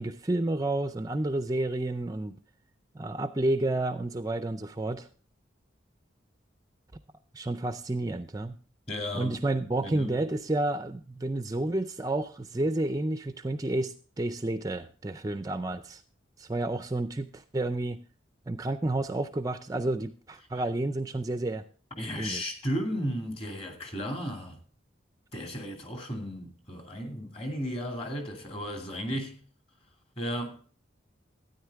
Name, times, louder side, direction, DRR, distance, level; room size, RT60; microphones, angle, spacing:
voice 1, 0.0-2.3 2.9-5.1 7.3-8.5 9.2-16.0 16.4-18.0 18.5-21.6 22.2-22.4, right 2 dB, 20° right, 0.4 m, -30 dB
voice 2, 8.9-9.4 9.8-10.2 22.0-24.6 25.3-29.4 30.2-30.6, equal, 30° left, 2.5 m, -34 dB
13.0 x 9.9 x 3.5 m
head